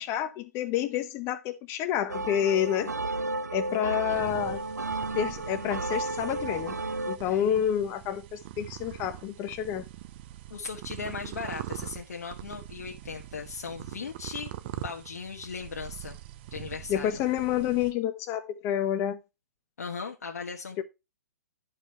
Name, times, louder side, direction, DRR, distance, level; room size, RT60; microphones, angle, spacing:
voice 1, 0.0-2.9 3.5-4.6 5.1-6.8 7.0-9.8 16.9-19.2, left 10 dB, 30° left, 1.3 m, -29 dB
sound 1, 2.1-7.2, right 2 dB, 85° right, 0.7 m, -33 dB
sound 2, 4.1-17.9, right 14 dB, 40° right, 0.7 m, -43 dB
voice 2, 10.5-16.2 16.5-17.2 19.8-20.8, left 5 dB, 70° left, 1.3 m, -38 dB
11.0 x 5.2 x 4.4 m
figure-of-eight pair, 120°, 9 cm